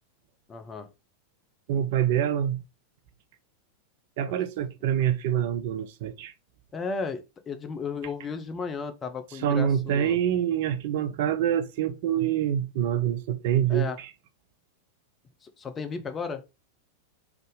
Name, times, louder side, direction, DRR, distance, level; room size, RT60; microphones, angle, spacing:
voice 1, 0.5-0.9 4.2-4.3 6.7-10.2 13.7-14.0 15.4-16.4, left 5 dB, 20° left, 0.7 m, -34 dB
voice 2, 1.7-2.6 4.2-6.3 9.4-14.1, right 10 dB, 50° right, 0.5 m, -26 dB
3.9 x 3.5 x 3.9 m
figure-of-eight pair, 90°, 0 cm